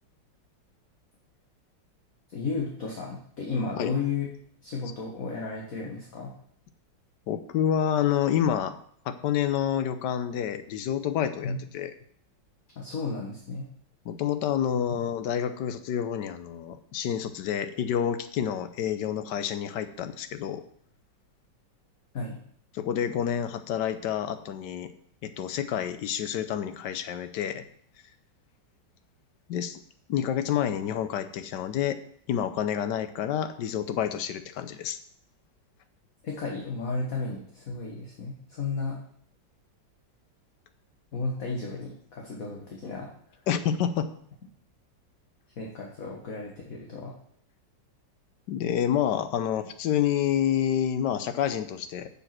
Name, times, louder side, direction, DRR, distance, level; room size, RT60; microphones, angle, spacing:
voice 1, 2.3-4.3 4.6-6.3 11.4-11.6 12.8-13.7 22.1-22.4 36.2-39.0 41.1-43.1 45.6-47.1, left 4 dB, 50° left, -1 dB, 1.7 m, -33 dB
voice 2, 7.3-8.8 9.0-11.9 14.0-20.6 22.7-24.9 25.2-27.6 29.5-29.8 30.1-32.0 32.3-35.0 43.5-44.1 48.5-52.1, left 9 dB, 70° left, 11 dB, 1.3 m, -28 dB
7.1 x 7.1 x 5.9 m, 0.64 s
omnidirectional pair, 2.0 m